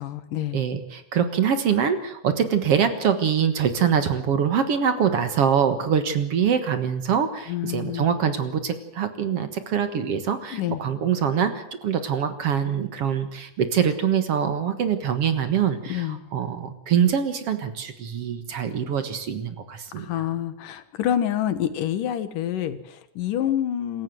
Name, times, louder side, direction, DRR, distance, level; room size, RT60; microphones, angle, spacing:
voice 1, 0.0-0.6 7.5-8.1 10.5-10.8 15.9-16.2 20.0-24.0, left 11 dB, 90° left, 12 dB, 3.0 m, -27 dB
voice 2, 0.5-20.1, right 7 dB, 55° right, 10 dB, 2.2 m, -24 dB
26.5 x 15.0 x 7.7 m, 0.71 s
omnidirectional pair, 3.7 m